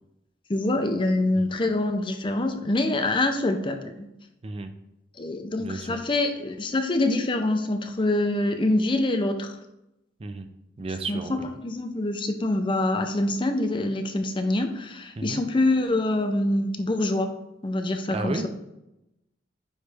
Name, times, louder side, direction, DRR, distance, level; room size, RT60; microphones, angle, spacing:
voice 1, 0.5-4.1 5.2-9.6 11.1-17.3 17.6-18.5, left 2 dB, 30° left, 7 dB, 0.5 m, -25 dB
voice 2, 5.6-6.0 10.2-10.5 10.8-11.5 15.2-15.4 18.1-18.5, right 3 dB, 30° right, 7 dB, 0.4 m, -33 dB
9.5 x 3.2 x 3.4 m, 0.89 s
head